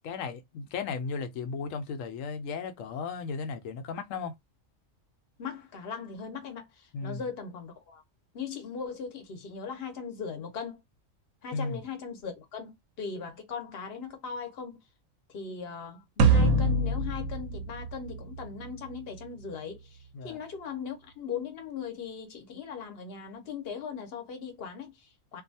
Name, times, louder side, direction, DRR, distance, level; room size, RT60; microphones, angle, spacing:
voice 1, 0.0-4.3 6.9-7.3 11.5-11.8 20.1-20.4, left 5 dB, 80° left, 1.0 m, -35 dB
voice 2, 5.4-8.0 8.3-10.8 11.4-14.8 15.3-25.4, left 6 dB, 55° left, 0.9 m, -39 dB
sound 1, 16.2-18.7, right 3 dB, 90° right, 1.0 m, -24 dB
2.6 x 2.3 x 2.6 m
omnidirectional pair, 1.4 m